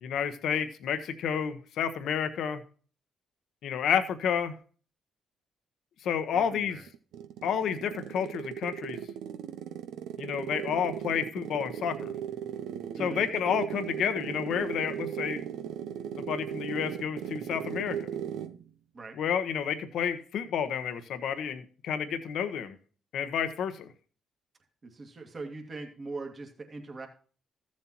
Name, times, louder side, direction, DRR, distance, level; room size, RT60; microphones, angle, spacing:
voice 1, 0.0-2.6 3.6-4.5 6.0-6.8 7.4-9.0 10.2-12.1 13.0-15.4 16.2-17.9 19.2-22.7 23.1-23.9, left 8 dB, 70° left, 9 dB, 1.0 m, -30 dB
voice 2, 6.3-6.8 13.0-13.3 18.9-19.2 24.8-27.1, right 3 dB, 40° right, 2 dB, 2.1 m, -41 dB
sound 1, 6.9-18.6, right 9 dB, 80° right, 0.6 m, -37 dB
14.0 x 7.4 x 2.9 m, 0.39 s
supercardioid pair, 60°, 0 cm